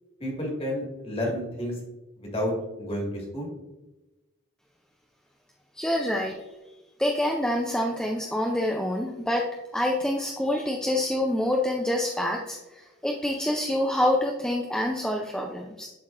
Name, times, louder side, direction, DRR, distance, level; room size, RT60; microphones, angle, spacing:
voice 1, 0.2-1.7 2.2-3.5, left 1 dB, 25° left, -1 dB, 1.8 m, -30 dB
voice 2, 5.8-6.4 7.0-15.9, left 1 dB, 5° left, 0 dB, 0.4 m, -27 dB
11.5 x 4.1 x 2.5 m, 1.0 s
head